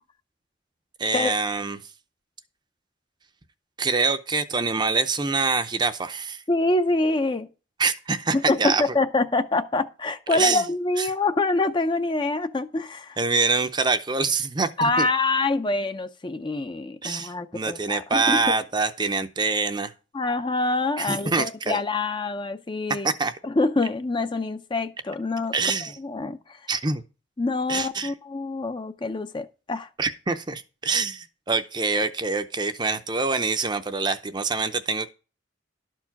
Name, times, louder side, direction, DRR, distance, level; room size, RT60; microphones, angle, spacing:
voice 1, 1.0-1.8 3.8-6.4 7.8-8.8 10.3-10.6 11.0-11.1 13.2-15.1 17.0-19.9 21.0-21.8 23.0-23.3 25.5-26.0 26.7-27.0 27.7-28.1 30.0-35.1, right 4 dB, 20° right, 0.6 m, -25 dB
voice 2, 6.5-7.5 8.3-13.2 14.8-18.6 20.1-23.1 23.4-25.5 25.8-26.6 27.4-29.9, left 2 dB, 25° left, 0.5 m, -25 dB
12.0 x 4.6 x 5.8 m
head